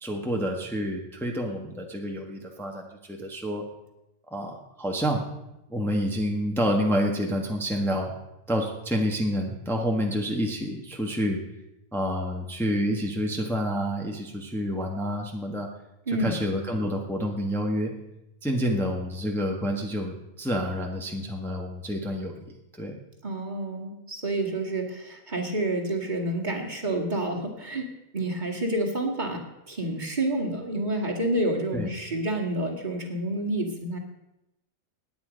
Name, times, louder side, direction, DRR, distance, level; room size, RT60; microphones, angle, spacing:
voice 1, 0.0-3.6 4.3-5.3 5.7-8.1 8.5-11.4 11.9-15.7 16.2-17.9 18.4-22.4 22.8-23.0 31.7-31.9, equal, ahead, 0 dB, 1.4 m, -28 dB
voice 2, 16.1-16.4 23.2-27.9 28.1-34.0, right 1 dB, 30° right, 1 dB, 2.1 m, -29 dB
18.0 x 9.4 x 5.2 m, 0.91 s
omnidirectional pair, 1.5 m